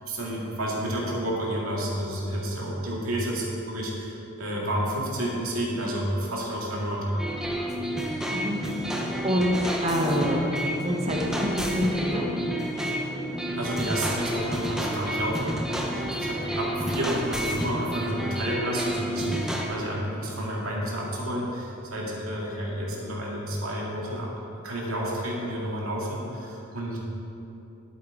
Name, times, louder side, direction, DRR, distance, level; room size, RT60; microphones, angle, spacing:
voice 1, 0.1-7.2 13.5-15.5 15.9-24.3 24.6-27.0, right 1 dB, 90° right, -3 dB, 2.2 m, -30 dB
sound 1, 7.2-19.7, equal, 5° right, 0.8 m, -30 dB
voice 2, 8.8-10.4 10.8-12.3, equal, 30° right, -1 dB, 1.3 m, -27 dB
12.5 x 8.1 x 3.8 m, 2.9 s
head